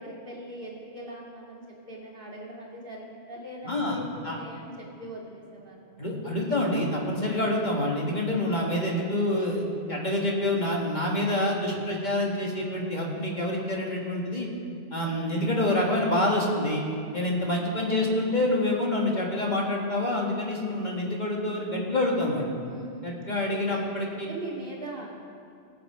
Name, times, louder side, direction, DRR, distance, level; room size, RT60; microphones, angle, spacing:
voice 1, 0.0-1.6 1.9-6.0 8.0-8.2 8.7-9.1 22.6-25.1, right 1 dB, 50° right, -4 dB, 2.4 m, -41 dB
voice 2, 3.6-4.0 4.2-4.4 6.0-14.5 14.9-16.8 17.1-22.4 23.0-24.3, left 1 dB, 40° left, -2 dB, 1.8 m, -27 dB
20.0 x 7.3 x 4.8 m, 2.5 s
omnidirectional pair, 1.2 m